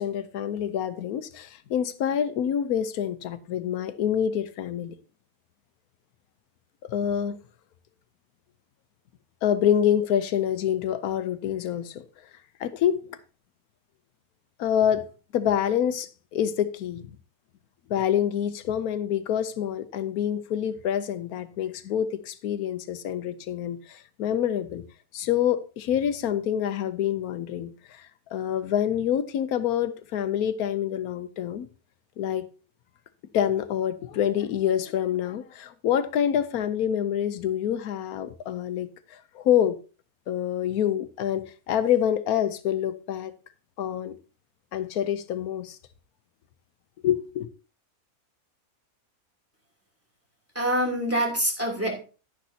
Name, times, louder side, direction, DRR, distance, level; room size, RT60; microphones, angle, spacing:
voice 1, 0.0-4.9 6.9-7.4 9.4-12.0 12.6-13.2 14.6-15.1 15.3-17.2 17.9-24.8 25.1-31.7 32.2-32.5 33.3-39.7 40.3-43.3 43.8-44.2 44.7-45.8 47.0-47.5, left 9 dB, 85° left, 1.2 m, -26 dB
voice 2, 50.5-52.0, equal, 10° right, 2.9 m, -25 dB
11.0 x 10.0 x 2.8 m
omnidirectional pair, 1.5 m